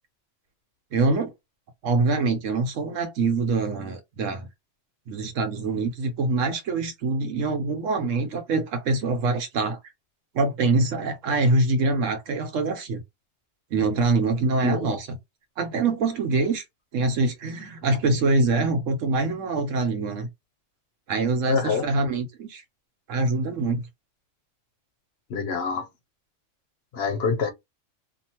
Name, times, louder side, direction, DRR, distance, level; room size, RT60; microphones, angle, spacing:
voice 1, 0.9-1.3 1.8-4.5 5.1-9.8 10.3-13.0 13.7-15.2 15.6-16.6 16.9-20.3 21.1-22.6 23.1-23.9, right 3 dB, 85° right, 1.2 m, -24 dB
voice 2, 21.5-21.9 25.3-25.9 26.9-27.5, left 5 dB, 60° left, 0.8 m, -25 dB
2.7 x 2.5 x 2.8 m
omnidirectional pair, 1.3 m